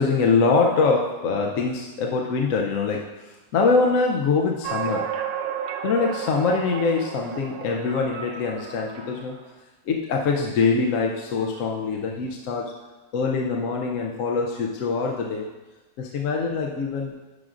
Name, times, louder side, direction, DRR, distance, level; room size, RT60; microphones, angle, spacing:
voice 1, 0.0-3.1 3.5-5.1 5.8-9.4 9.9-12.7 13.1-15.5 16.0-17.1, left 4 dB, 65° left, 0 dB, 1.0 m, -23 dB
sound 1, 4.6-9.4, right 9 dB, 80° right, 1.1 m, -33 dB
11.0 x 6.0 x 2.5 m, 1.2 s
omnidirectional pair, 1.6 m